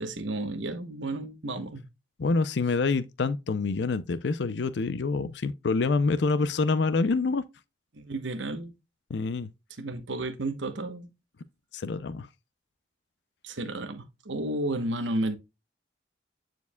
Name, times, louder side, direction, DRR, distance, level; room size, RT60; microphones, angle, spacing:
voice 1, 0.0-1.9 7.9-8.7 9.8-11.1 13.4-15.4, right 2 dB, 85° right, 1.0 m, -32 dB
voice 2, 2.2-7.4 9.1-9.5 11.7-12.3, left 4 dB, 70° left, 0.5 m, -26 dB
9.3 x 4.6 x 2.2 m
head